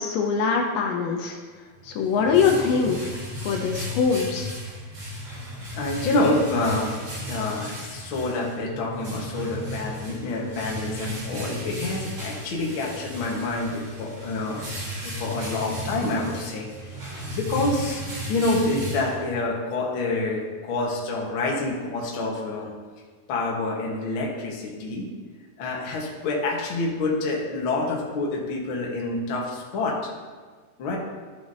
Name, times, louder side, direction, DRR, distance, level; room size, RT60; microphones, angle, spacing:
voice 1, 0.0-1.4 1.8-3.2 3.4-4.5, left 5 dB, 75° left, 1 dB, 2.4 m, -23 dB
sound 1, 1.7-19.6, equal, 45° right, 3.6 m, -35 dB
voice 2, 5.7-6.9 7.3-14.6 15.0-16.7 17.3-18.0 18.3-22.7 23.3-25.1 25.6-30.0 30.8-31.0, left 2 dB, 55° left, -2 dB, 1.5 m, -27 dB
13.5 x 6.3 x 2.8 m, 1.5 s
omnidirectional pair, 4.2 m